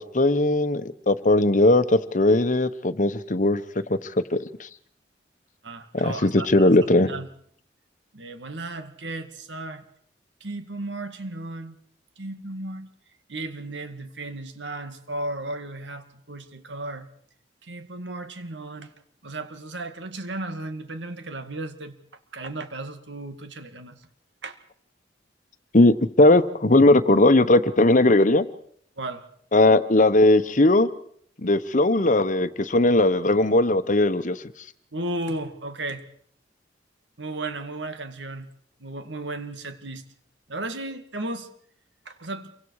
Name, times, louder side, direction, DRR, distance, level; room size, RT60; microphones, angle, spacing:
voice 1, 0.0-3.6 3.9-4.0 4.3-4.4 5.9-7.1 25.7-28.4 29.5-30.9 31.4-34.4, left 2 dB, 45° left, 12 dB, 1.1 m, -18 dB
voice 2, 5.6-7.3 8.1-9.8 10.4-11.8 12.2-12.9 13.3-17.1 17.6-18.9 19.2-21.9 22.3-24.0 24.4-24.6 29.0-29.2 34.9-36.0 37.2-38.5 38.8-40.1 40.5-41.5 42.1-42.5, right 2 dB, 80° right, 8 dB, 2.3 m, -35 dB
28.0 x 24.5 x 4.9 m, 0.63 s
head